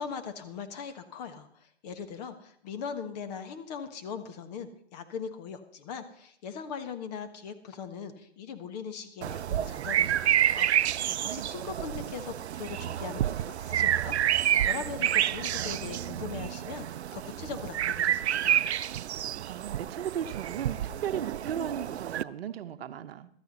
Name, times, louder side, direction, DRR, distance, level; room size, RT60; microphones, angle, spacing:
voice 1, 0.0-18.9, left 6 dB, 40° left, 8 dB, 1.4 m, -40 dB
sound 1, 9.2-22.2, right 11 dB, 80° right, 0.5 m, -29 dB
voice 2, 11.1-11.5 19.4-23.3, right 9 dB, 65° right, 10 dB, 0.9 m, -36 dB
15.0 x 13.0 x 4.1 m, 0.68 s
hypercardioid pair, 140°, 33 cm